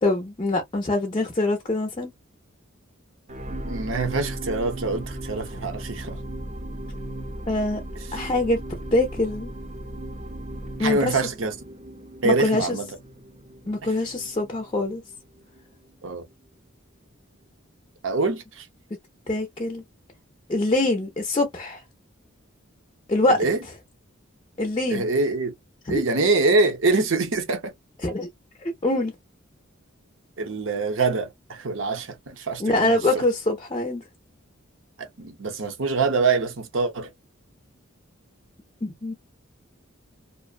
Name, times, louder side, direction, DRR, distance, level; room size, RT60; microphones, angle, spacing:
voice 1, 0.0-2.1 7.5-7.8 8.1-8.6 8.9-9.5 10.8-11.2 12.2-12.8 13.7-15.0 19.3-19.8 20.5-21.8 23.1-23.4 24.6-25.1 25.9-26.0 28.0-28.3 28.8-29.1 32.6-34.0 38.8-39.1, left 2 dB, 25° left, 0.5 m, -24 dB
sound 1, 3.3-15.7 16.3-16.4, right 1 dB, 35° right, 0.7 m, -37 dB
voice 2, 3.7-6.2 10.8-11.5 12.2-12.9 16.0-16.2 18.0-18.6 23.3-23.6 24.9-25.5 25.9-27.7 30.4-33.2 35.2-37.1, right 3 dB, 70° right, 0.8 m, -24 dB
2.5 x 2.1 x 2.3 m
head